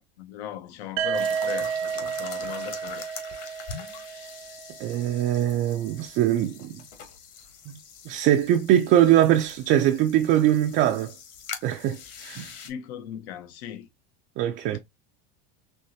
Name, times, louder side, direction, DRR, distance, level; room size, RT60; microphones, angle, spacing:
voice 1, 0.2-3.0 12.7-13.9 14.7-14.8, left 10 dB, 75° left, 0.9 m, -38 dB
sound 1, 1.0-4.8, right 7 dB, 65° right, 0.8 m, -31 dB
sound 2, 1.1-12.7, left 7 dB, 50° left, 1.4 m, -43 dB
voice 2, 4.8-6.8 7.7-7.8 8.1-11.1 11.6-12.5 14.4-14.8, right 12 dB, 40° right, 0.4 m, -22 dB
4.5 x 3.0 x 2.7 m
supercardioid pair, 125°, 32 cm